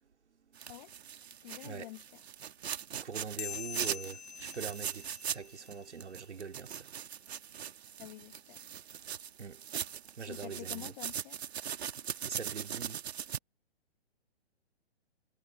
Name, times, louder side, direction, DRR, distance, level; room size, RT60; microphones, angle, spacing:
sound 1, 0.5-5.7 6.0-13.4, right 9 dB, 70° right, 2.4 m, -40 dB
voice 1, 1.4-2.2 8.0-8.6 10.3-11.4, left 19 dB, 40° left, 1.6 m, -48 dB
voice 2, 2.9-6.9 9.4-9.7 10.1-10.9 12.2-13.1, right 5 dB, 85° right, 2.7 m, -43 dB
sound 2, 3.4-6.2, left 9 dB, 65° left, 3.4 m, -45 dB
hypercardioid pair, 140°, 34 cm